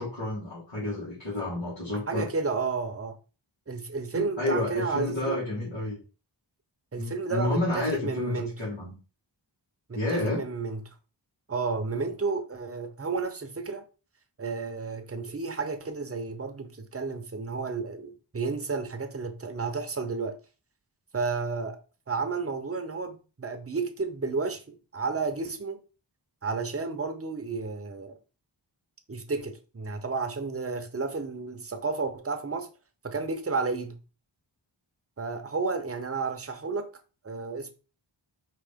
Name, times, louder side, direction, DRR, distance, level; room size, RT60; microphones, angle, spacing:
voice 1, 0.0-2.3 4.1-6.0 6.9-9.0 9.9-10.4, left 2 dB, 80° left, 2.5 m, -30 dB
voice 2, 2.1-3.2 3.7-5.4 6.9-8.6 9.9-10.9 11.5-13.8 14.4-20.4 21.1-21.8 22.1-25.8 26.4-28.2 29.1-32.7 33.0-34.0 35.2-36.9 37.2-37.7, right 4 dB, 30° right, 0.8 m, -32 dB
4.7 x 3.1 x 3.5 m
wide cardioid pair, 70°, 46 cm